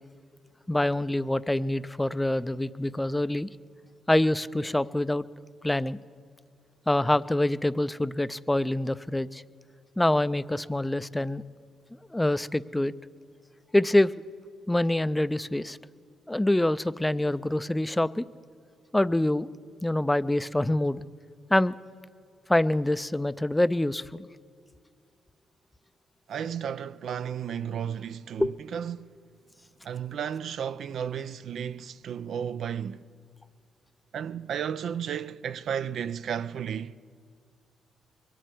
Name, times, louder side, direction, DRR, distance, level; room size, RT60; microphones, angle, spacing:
voice 1, 0.7-3.5 4.1-5.3 5.6-6.0 6.9-9.4 10.0-11.4 12.1-12.9 13.7-14.1 14.7-15.8 16.3-18.3 18.9-19.5 19.8-21.0 21.5-21.8 22.5-24.3 28.4-28.5, left 1 dB, 10° left, 0.4 m, -25 dB
voice 2, 26.3-29.1 29.8-33.1 34.1-37.0, right 8 dB, 70° right, 0.4 m, -33 dB
22.0 x 7.6 x 8.3 m
supercardioid pair, 60°, 0 cm